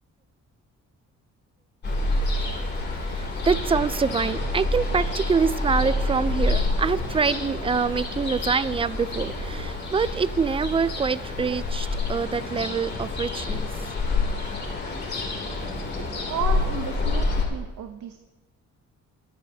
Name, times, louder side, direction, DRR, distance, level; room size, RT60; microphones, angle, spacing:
Ocean, 1.8-17.4, left 2 dB, 35° left, 3.0 m, -28 dB
voice 1, 3.1-13.7, right 5 dB, 20° right, 16 dB, 0.5 m, -25 dB
voice 2, 16.1-18.2, right 8 dB, 75° right, 6 dB, 0.9 m, -33 dB
22.0 x 9.0 x 2.8 m, 1.2 s
cardioid pair, 90°, 30 cm